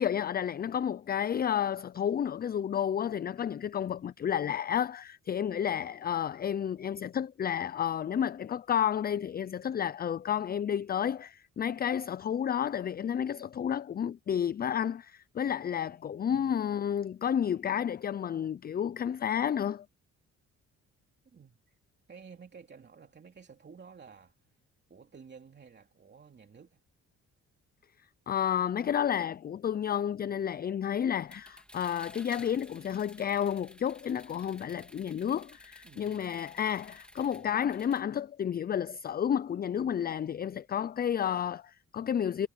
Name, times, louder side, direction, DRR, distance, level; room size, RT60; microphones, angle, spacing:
voice 1, 0.0-19.9 28.3-42.5, left 9 dB, 30° left, 0.4 m, -31 dB
voice 2, 21.3-21.8 22.1-24.5 24.9-26.8 35.8-36.3 37.3-37.7, right 6 dB, 35° right, 2.8 m, -53 dB
sound 1, 31.3-38.0, equal, 5° left, 3.4 m, -54 dB
cardioid pair, 90°, 30 cm